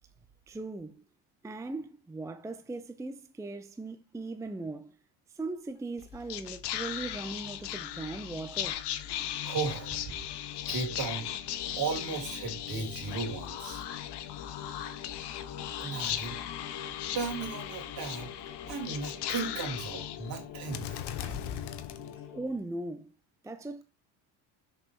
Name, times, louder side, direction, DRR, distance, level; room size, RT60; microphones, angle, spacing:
voice 1, 0.5-1.0 1.4-5.0 5.3-8.8 22.3-23.1 23.4-23.8, right 2 dB, 5° right, 0.6 m, -39 dB
Whispering, 6.0-22.6, left 11 dB, 60° left, 1.2 m, -37 dB
voice 2, 9.4-10.1 10.7-11.3 11.8-13.8 15.8-16.4 17.1-18.3 18.7-21.0, right 5 dB, 50° right, 3.5 m, -35 dB
sound 1, 21.2-22.6, left 3 dB, 40° left, 4.1 m, -56 dB
6.9 x 5.5 x 4.7 m
cardioid pair, 120°, 45 cm